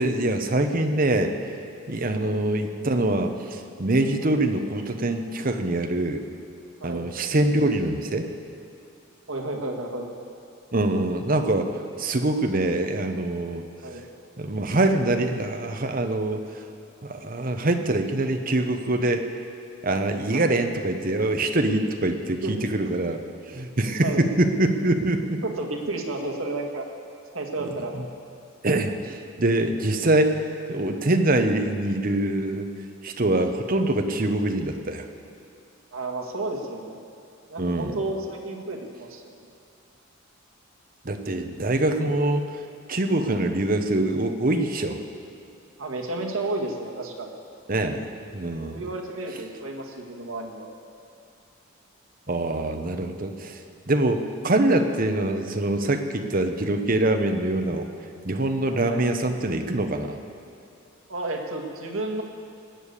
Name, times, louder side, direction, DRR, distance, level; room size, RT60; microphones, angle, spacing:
voice 1, 0.0-1.3 1.9-6.2 6.8-8.3 10.7-13.6 14.4-16.4 17.0-19.3 19.8-23.2 23.5-25.4 27.9-28.0 28.6-30.4 30.7-32.7 33.0-35.0 37.6-38.0 41.0-42.5 42.9-45.0 47.7-48.8 52.3-53.6 53.9-57.9 58.2-60.2, right 1 dB, 40° right, 6 dB, 1.0 m, -24 dB
voice 2, 9.3-10.1 13.8-14.0 20.3-20.5 22.4-22.5 24.0-24.2 25.4-26.9 27.3-27.9 35.9-37.0 37.5-39.3 45.8-47.3 48.7-50.7 58.9-59.0 61.1-62.2, right 2 dB, 80° right, 2 dB, 1.9 m, -32 dB
19.0 x 6.9 x 8.3 m, 2.6 s
head